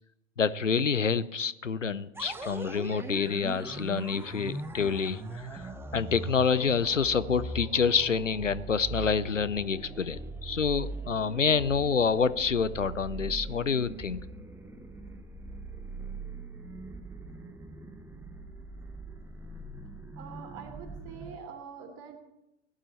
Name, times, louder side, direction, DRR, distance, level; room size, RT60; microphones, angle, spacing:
voice 1, 0.4-5.6 5.9-14.2, left 6 dB, 90° left, 17 dB, 0.6 m, -27 dB
sound 1, 2.1-21.4, right 2 dB, 5° right, 1.0 m, -41 dB
voice 2, 20.1-22.2, right 6 dB, 40° right, 4 dB, 3.1 m, -44 dB
17.5 x 11.5 x 4.3 m, 0.88 s
figure-of-eight pair, 90°, 37 cm